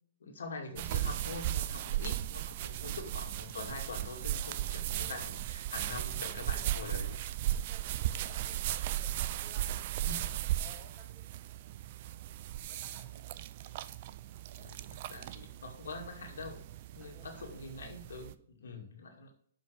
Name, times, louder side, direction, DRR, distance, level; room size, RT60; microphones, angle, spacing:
voice 1, 0.2-7.2 10.0-10.4 14.6-16.6 16.9-19.3, left 3 dB, 80° left, 2 dB, 2.2 m, -44 dB
sound 1, 0.8-18.3, right 13 dB, 45° right, 0.5 m, -36 dB
voice 2, 6.3-6.9 7.4-8.6 8.9-9.9 10.6-11.3 12.7-13.2 17.0-17.5 18.6-18.9, right 1 dB, 15° right, -3 dB, 4.4 m, -57 dB
7.3 x 5.3 x 6.3 m, 0.62 s
hypercardioid pair, 135°, 0 cm